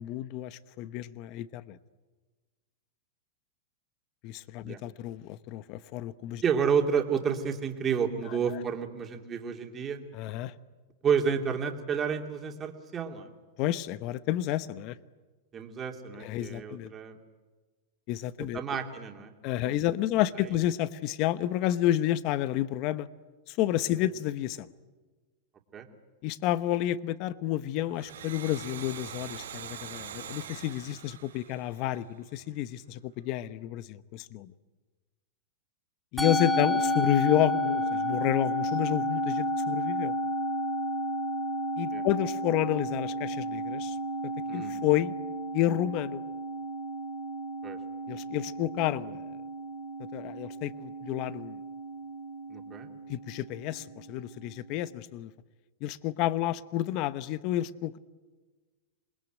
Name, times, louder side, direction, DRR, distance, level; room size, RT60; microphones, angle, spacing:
voice 1, 0.0-1.8 4.2-6.4 10.1-10.5 13.6-15.0 16.2-16.9 18.1-18.6 19.4-23.1 23.5-24.7 26.2-34.5 36.1-40.2 41.8-44.0 44.2-45.1 45.5-46.2 48.1-49.3 50.1-51.6 53.1-55.3 55.8-58.0, left 13 dB, 45° left, 15 dB, 0.9 m, -30 dB
voice 2, 6.4-10.0 11.0-13.3 15.5-17.2 18.5-19.3 19.6-19.8 23.9-24.0 25.7-25.9 41.9-42.0 44.5-44.8 47.6-47.8 52.5-52.9, right 6 dB, 25° right, 4 dB, 2.6 m, -30 dB
Domestic sounds home sounds, 27.9-32.4, right 8 dB, 90° right, 4.7 m, -43 dB
Musical instrument, 36.2-54.7, left 1 dB, 10° left, 3.8 m, -32 dB
27.0 x 21.0 x 9.2 m, 1.3 s
supercardioid pair, 140°, 0 cm